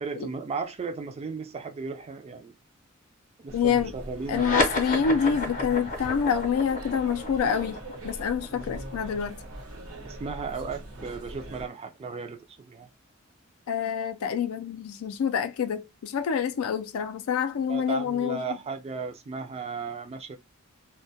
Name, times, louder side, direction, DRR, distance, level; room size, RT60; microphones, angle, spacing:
voice 1, 0.0-2.5 3.4-4.7 10.0-12.9 17.7-20.4, right 4 dB, 30° right, 0.3 m, -35 dB
voice 2, 3.5-3.9 4.3-7.8 8.0-9.4 13.7-18.4, left 7 dB, 90° left, 0.3 m, -27 dB
sound 1, 3.5-11.6, right 1 dB, 80° right, 0.9 m, -41 dB
sound 2, 4.3-11.1, left 2 dB, 40° left, 0.6 m, -32 dB
2.1 x 2.1 x 2.6 m
head